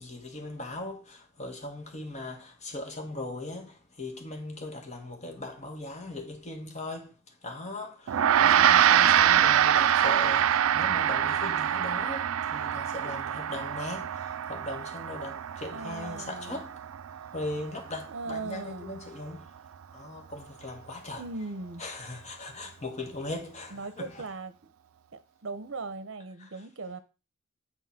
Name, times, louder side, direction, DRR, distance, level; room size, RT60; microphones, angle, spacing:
voice 1, 0.0-16.8 17.3-19.5 19.9-21.2 21.8-24.2 26.4-26.6, left 1 dB, 35° left, 1.4 m, -39 dB
Gong, 8.1-17.7, right 10 dB, 85° right, 0.4 m, -25 dB
voice 2, 15.7-16.6 18.1-19.0 21.2-21.8 23.7-24.7 25.1-27.0, right 3 dB, 65° right, 0.7 m, -39 dB
8.1 x 3.7 x 5.8 m
head